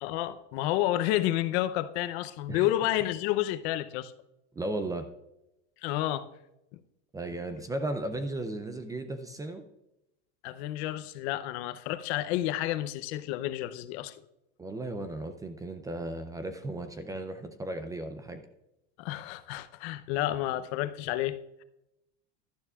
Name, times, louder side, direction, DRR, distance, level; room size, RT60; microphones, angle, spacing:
voice 1, 0.0-4.1 5.8-6.3 6.7-6.8 10.4-14.1 19.0-21.6, left 14 dB, 65° left, 0.7 m, -30 dB
voice 2, 4.6-5.1 7.1-9.6 14.6-18.4, right 2 dB, 10° right, 0.4 m, -35 dB
12.5 x 11.0 x 2.4 m
supercardioid pair, 145°, 35 cm